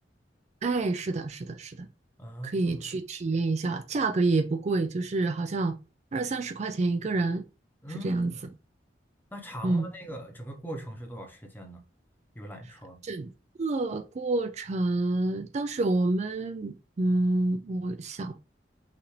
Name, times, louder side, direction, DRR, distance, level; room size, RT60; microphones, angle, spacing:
voice 1, 0.6-1.9 2.4-5.7 6.1-7.4 8.0-8.3 9.6-9.9 13.0-13.3 13.6-18.4, right 2 dB, 40° right, 0.4 m, -28 dB
voice 2, 2.2-2.8 7.8-8.5 9.3-11.8 12.3-13.0, right 1 dB, 10° left, 0.9 m, -41 dB
5.7 x 2.6 x 3.2 m
head